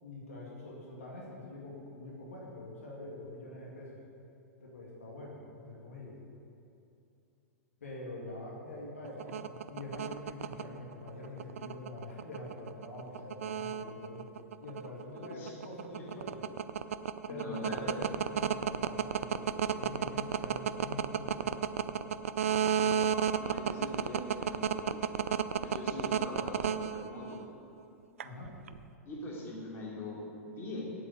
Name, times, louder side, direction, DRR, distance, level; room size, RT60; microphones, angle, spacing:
voice 1, 0.0-4.0 4.6-6.2 7.8-14.2 14.6-16.4 17.3-21.7 28.2-28.5, left 2 dB, 70° left, -4 dB, 2.3 m, -45 dB
sound 1, 9.0-27.4 28.2-28.8, right 9 dB, 60° right, 0.5 m, -31 dB
voice 2, 15.1-15.5 15.9-16.1 17.2-18.0 22.6-23.0 23.4-25.1 25.6-27.4 29.0-30.9, left 2 dB, 25° left, -4 dB, 3.1 m, -42 dB
8.9 x 8.3 x 8.3 m, 2.7 s
figure-of-eight pair, 100°, 8 cm